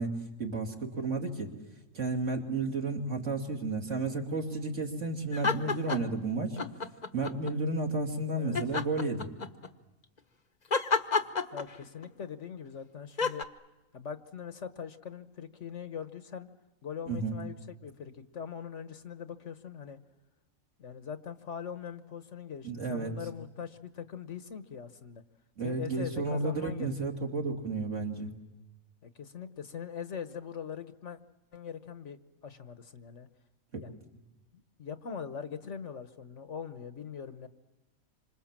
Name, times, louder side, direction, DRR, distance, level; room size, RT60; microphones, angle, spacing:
voice 1, 0.0-1.5 1.9-6.6 7.1-9.3 17.1-17.4 22.6-23.1 25.6-28.3 33.7-33.8, right 3 dB, 55° right, 1 dB, 3.0 m, -32 dB
sound 1, 5.3-6.2 6.6-7.5 8.5-9.7 10.7-12.1 13.2-13.4, left 4 dB, 35° left, 1.0 m, -30 dB
voice 2, 11.5-13.5 13.9-16.5 16.8-20.0 20.8-25.2 25.6-27.1 29.0-31.2 31.5-32.2 32.4-33.3 33.8-34.0 34.8-37.5, left 7 dB, 60° left, 10 dB, 1.4 m, -41 dB
27.5 x 26.0 x 7.4 m, 1.0 s
omnidirectional pair, 1.5 m